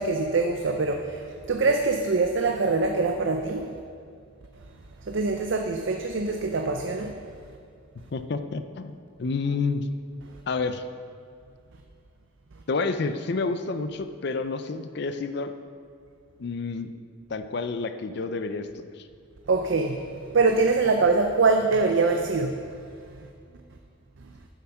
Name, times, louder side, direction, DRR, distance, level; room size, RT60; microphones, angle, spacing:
voice 1, 0.0-3.7 5.1-7.2 19.5-20.0 20.3-22.5, right 3 dB, 60° right, 4 dB, 0.5 m, -24 dB
voice 2, 8.1-9.9 10.5-10.8 12.7-15.5 16.4-16.9 17.3-19.1, left 4 dB, 55° left, 10 dB, 0.5 m, -29 dB
9.2 x 7.1 x 5.8 m, 2.3 s
head